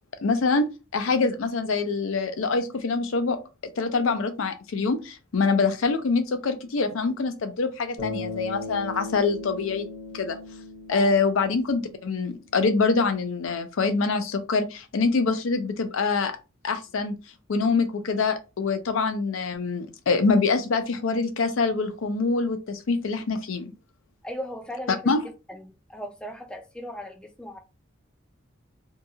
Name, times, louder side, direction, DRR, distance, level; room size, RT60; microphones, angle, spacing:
voice 1, 0.2-0.7 0.9-3.4 3.8-9.9 10.1-10.4 10.9-16.3 16.6-17.1 17.5-23.7 25.1-25.2, left 4 dB, 80° left, 0.5 m, -25 dB
Bass guitar, 8.0-12.4, left 2 dB, 35° left, 0.8 m, -37 dB
voice 2, 24.2-25.1 25.5-27.6, equal, 5° left, 0.3 m, -37 dB
2.8 x 2.3 x 2.7 m
head